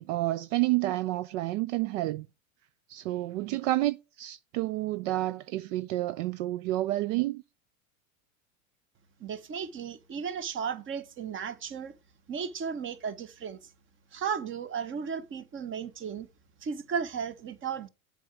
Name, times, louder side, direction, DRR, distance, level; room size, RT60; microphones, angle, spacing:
voice 1, 0.0-2.3 2.9-7.4, right 17 dB, 60° right, 0.5 m, -29 dB
voice 2, 9.2-12.0 12.3-13.6 14.1-16.3 16.6-17.9, right 7 dB, 30° right, 1.1 m, -35 dB
7.5 x 5.1 x 5.9 m
hypercardioid pair, 105°, 42 cm